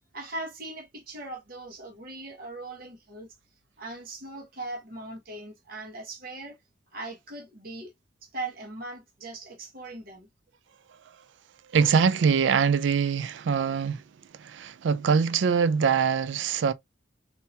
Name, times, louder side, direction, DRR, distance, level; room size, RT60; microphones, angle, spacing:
voice 1, 0.1-3.3 3.8-6.6 6.9-7.9 8.2-10.3, right 2 dB, 50° right, 1.3 m, -39 dB
voice 2, 11.7-14.0 14.4-16.7, right 6 dB, 75° right, 0.4 m, -23 dB
3.7 x 2.8 x 2.7 m
head